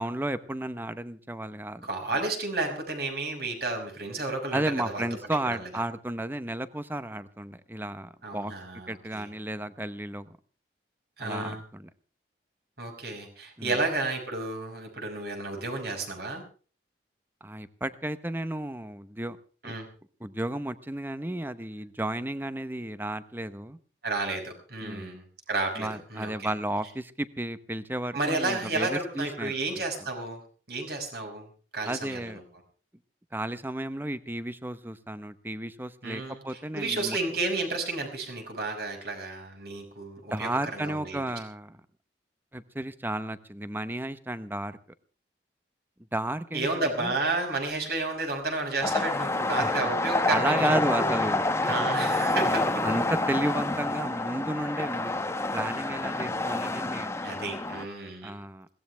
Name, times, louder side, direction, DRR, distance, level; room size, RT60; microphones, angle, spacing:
voice 1, 0.0-1.9 4.5-8.5 8.9-10.3 11.2-11.9 13.6-13.8 17.4-19.4 19.6-19.8 20.2-23.8 24.8-25.2 25.8-29.8 31.8-32.4 33.3-37.2 40.3-41.8 42.5-44.8 46.1-47.1 49.6-49.9 50.3-51.7 52.8-55.2 55.5-57.6 58.2-58.7, right 1 dB, 10° right, 13 dB, 0.9 m, -33 dB
voice 2, 1.8-5.1 5.5-5.7 8.2-9.3 11.2-11.6 12.8-16.4 19.6-19.9 24.0-26.5 28.1-30.4 30.7-31.5 31.7-32.4 36.0-41.2 46.5-51.1 51.6-52.9 57.2-58.3, right 3 dB, 60° right, 3 dB, 5.8 m, -32 dB
sound 1, 48.8-57.9, left 2 dB, 15° left, 0.9 m, -28 dB
21.5 x 18.0 x 3.4 m, 0.39 s
head